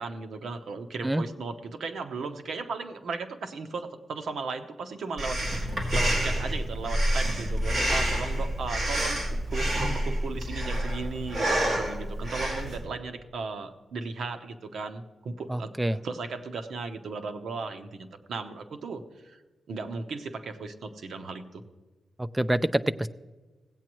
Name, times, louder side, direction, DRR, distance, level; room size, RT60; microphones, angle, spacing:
voice 1, 0.0-19.4 19.7-21.6, right 4 dB, 75° right, 6 dB, 0.9 m, -36 dB
Breathing, 5.2-12.8, right 1 dB, 45° right, 2.2 m, -28 dB
voice 2, 15.5-16.0 22.2-23.1, right 1 dB, 10° right, 12 dB, 0.3 m, -26 dB
16.5 x 8.6 x 3.0 m, 1.2 s
wide cardioid pair, 165°, 0 cm